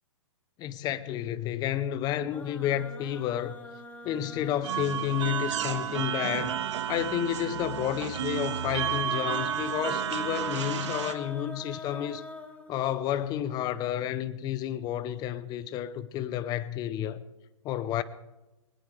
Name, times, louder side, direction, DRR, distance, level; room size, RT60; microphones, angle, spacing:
voice 1, 0.6-3.6 4.0-6.6 6.9-12.2 12.7-17.2 17.6-18.0, left 11 dB, 25° left, 0.8 m, -31 dB
sound 1, 2.3-6.3 7.4-13.2, left 2 dB, 10° left, 1.8 m, -44 dB
sound 2, 4.6-11.1, right 9 dB, 60° right, 1.7 m, -32 dB
22.0 x 19.5 x 3.4 m
hypercardioid pair, 135°, 17 cm